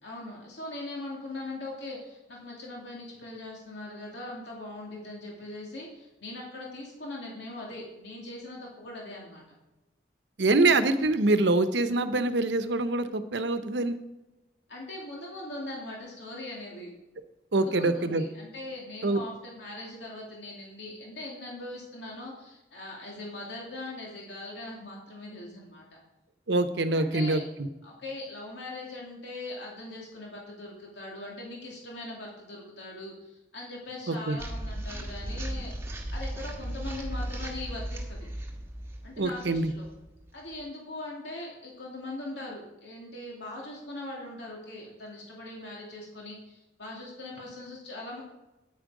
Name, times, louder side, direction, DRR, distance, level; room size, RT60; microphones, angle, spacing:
voice 1, 0.0-9.4 14.7-16.9 17.5-26.0 26.9-27.4 27.8-38.3 39.0-39.9 40.3-48.2, left 2 dB, 80° left, -3 dB, 2.6 m, -41 dB
voice 2, 10.4-14.0 17.5-18.2 19.0-19.2 26.5-27.7 34.1-34.4 39.2-39.7, right 2 dB, 80° right, 11 dB, 0.8 m, -25 dB
sound 1, 34.4-40.6, right 1 dB, 15° right, 1.4 m, -36 dB
9.4 x 9.1 x 4.9 m, 1.0 s
head